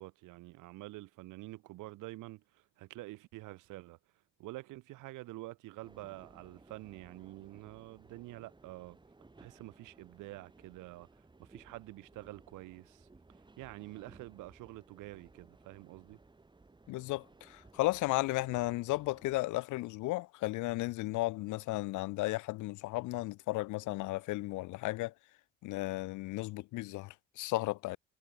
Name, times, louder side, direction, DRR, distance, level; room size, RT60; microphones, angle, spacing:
voice 1, 0.0-4.0 4.4-9.0 9.4-11.1 11.4-13.1 13.6-16.2, right 19 dB, 90° right, 0.7 m, -48 dB
sound 1, 5.8-19.4, right 3 dB, 15° right, 1.2 m, -60 dB
voice 2, 16.9-25.1 25.6-28.0, left 19 dB, 80° left, 0.5 m, -34 dB
cardioid pair, 90°, 30 cm